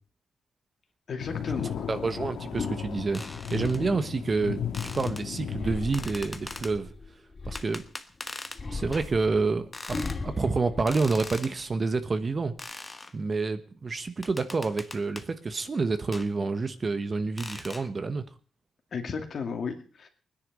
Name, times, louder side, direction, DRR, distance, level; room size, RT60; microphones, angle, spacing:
voice 1, 1.1-1.8 18.9-20.1, left 5 dB, 60° left, 4 dB, 2.3 m, -34 dB
sound 1, 1.2-6.7, left 8 dB, 85° left, 1.8 m, -35 dB
voice 2, 1.9-3.2 3.5-4.6 4.9-6.9 7.4-7.8 8.7-12.5 13.1-18.2, right 4 dB, 35° right, 10 dB, 1.2 m, -28 dB
sound 2, 3.1-3.8 4.7-5.2 5.9-6.7 7.5-8.6 8.9-9.1 9.7-10.2 10.9-11.5 12.6-13.1 14.2-15.3 16.1-16.3 17.4-17.9, left 2 dB, 20° left, 1.2 m, -41 dB
sound 3, 5.5-7.9 8.5-11.6 12.0-12.6, left 3 dB, 35° left, 2.0 m, -38 dB
20.5 x 10.0 x 5.4 m, 0.42 s
cardioid pair, 100°, 0 cm